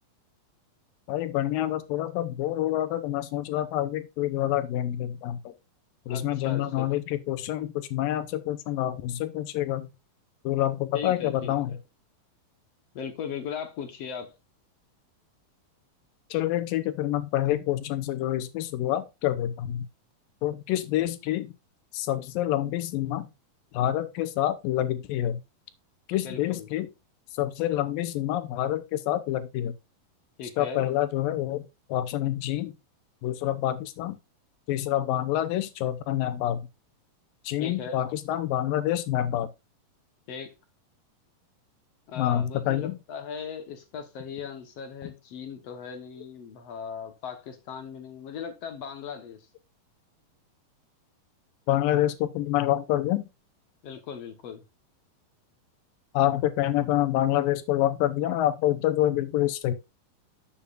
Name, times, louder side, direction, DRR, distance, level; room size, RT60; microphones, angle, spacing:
voice 1, 1.1-5.4 6.1-9.9 10.4-11.7 16.3-19.9 20.4-21.5 21.9-23.3 23.7-25.4 26.1-26.9 27.3-29.7 30.6-32.8 33.2-34.2 34.7-36.6 37.4-39.5 42.2-43.0 51.7-53.3 56.1-59.7, left 13 dB, 85° left, 2.5 m, -27 dB
voice 2, 6.1-6.9 10.9-11.8 12.9-14.3 26.2-26.7 30.4-30.9 37.6-38.0 40.3-40.5 42.1-49.4 53.8-54.6, left 6 dB, 60° left, 1.8 m, -38 dB
10.5 x 7.2 x 2.4 m
omnidirectional pair, 4.0 m